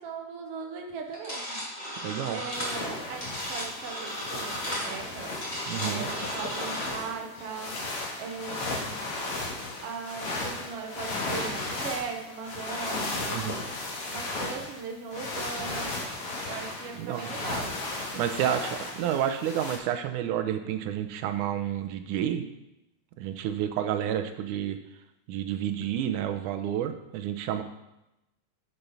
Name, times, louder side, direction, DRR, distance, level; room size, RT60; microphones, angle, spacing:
voice 1, 0.0-1.6 2.3-5.4 5.8-7.8 8.2-9.0 9.8-13.4 14.0-16.0 16.5-17.8 18.1-18.7, right 5 dB, 60° right, 3 dB, 1.7 m, -39 dB
sound 1, 1.1-6.9, equal, 15° left, 1.9 m, -36 dB
voice 2, 2.0-2.4 5.7-6.1 13.3-13.6 16.9-17.3 18.2-22.4 23.2-24.8 25.3-27.6, right 10 dB, 90° right, 8 dB, 2.2 m, -30 dB
sound 2, 2.5-19.8, left 2 dB, 55° left, 2.2 m, -35 dB
7.1 x 6.9 x 5.5 m, 0.91 s
omnidirectional pair, 3.5 m